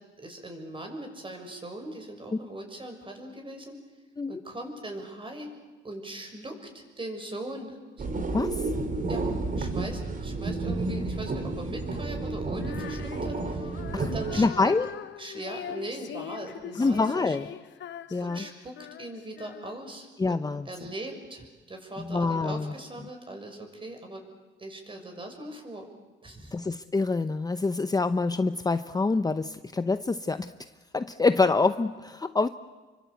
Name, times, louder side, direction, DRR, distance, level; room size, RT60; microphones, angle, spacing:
voice 1, 0.2-3.8 4.3-5.5 5.8-7.8 9.1-9.2 9.6-14.5 15.2-17.4 18.2-20.4 20.6-24.2 24.6-25.8 26.2-26.6, right 1 dB, 25° right, 4 dB, 6.7 m, -40 dB
sound 1, 8.0-14.5, right 3 dB, 45° right, 3.7 m, -31 dB
Female singing, 12.6-20.0, left 10 dB, 65° left, 1.1 m, -42 dB
voice 2, 14.4-14.9 16.8-17.5 18.1-18.4 20.2-20.7 22.0-22.7 26.5-30.5 30.9-32.5, left 3 dB, 20° left, 10 dB, 0.8 m, -26 dB
29.0 x 24.0 x 8.3 m, 1.3 s
cardioid pair, 90°, 20 cm